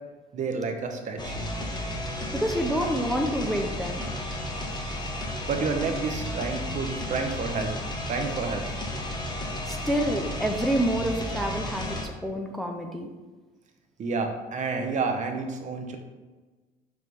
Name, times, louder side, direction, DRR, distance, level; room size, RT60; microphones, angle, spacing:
voice 1, 0.3-1.3 5.5-7.7 8.1-8.6 14.0-16.0, right 4 dB, 45° right, 4 dB, 0.9 m, -29 dB
sound 1, 1.2-12.1, left 1 dB, 25° left, 1.2 m, -33 dB
voice 2, 2.3-4.1 9.6-13.1, equal, ahead, 2 dB, 0.6 m, -28 dB
6.1 x 3.2 x 5.4 m, 1.3 s
cardioid pair, 110°, 17 cm